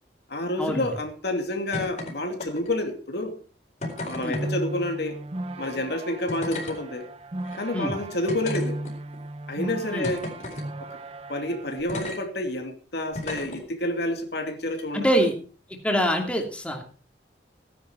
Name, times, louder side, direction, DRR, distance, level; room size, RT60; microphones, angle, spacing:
voice 1, 0.3-3.4 4.1-5.2 5.6-7.1 7.5-8.8 9.5-10.3 10.8-10.9 11.3-15.3, left 1 dB, 65° left, 5 dB, 2.5 m, -29 dB
sound 1, 1.7-2.1 2.4-2.8 3.8-4.5 5.6-5.7 6.3-6.8 7.4-7.6 8.3-9.2 10.0-10.7 11.9-12.2 13.1-13.6 14.7-14.8, left 2 dB, 45° left, 4.3 m, -34 dB
sound 2, 3.8-11.8, right 1 dB, 35° right, 1.0 m, -36 dB
voice 2, 14.9-15.3 15.8-16.8, equal, 5° left, 2 dB, 2.6 m, -24 dB
17.0 x 10.5 x 4.5 m, 0.39 s
head